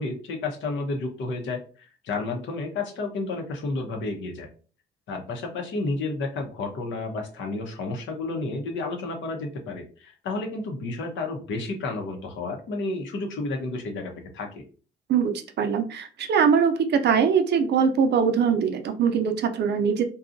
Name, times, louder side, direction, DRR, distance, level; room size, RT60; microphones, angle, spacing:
voice 1, 0.0-4.5 5.1-14.6, left 3 dB, 75° left, 3 dB, 0.8 m, -31 dB
voice 2, 15.6-20.0, right 6 dB, 60° right, 7 dB, 0.5 m, -22 dB
2.7 x 2.3 x 2.5 m, 0.38 s
cardioid pair, 90°, 20 cm